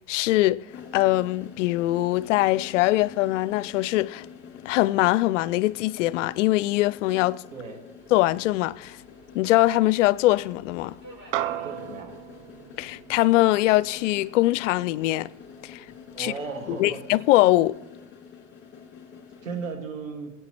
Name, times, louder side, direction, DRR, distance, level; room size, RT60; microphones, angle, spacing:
voice 1, 0.1-0.6 0.9-4.3 4.7-7.4 8.1-9.0 9.3-11.0 12.8-15.3 15.6-15.8 16.2-16.3 16.7-17.8, left 17 dB, 70° left, 0.5 m, -22 dB
sound 1, 0.7-19.7, left 7 dB, 30° left, 2.6 m, -47 dB
voice 2, 7.5-7.9 11.6-12.1 16.1-17.0 19.4-20.3, right 4 dB, 90° right, 2.1 m, -35 dB
Subway metro underground, 8.0-17.1, right 2 dB, 30° right, 5.2 m, -55 dB
sound 2, 11.3-16.0, right 12 dB, 55° right, 0.6 m, -36 dB
22.0 x 9.0 x 3.1 m
hypercardioid pair, 90°, 39 cm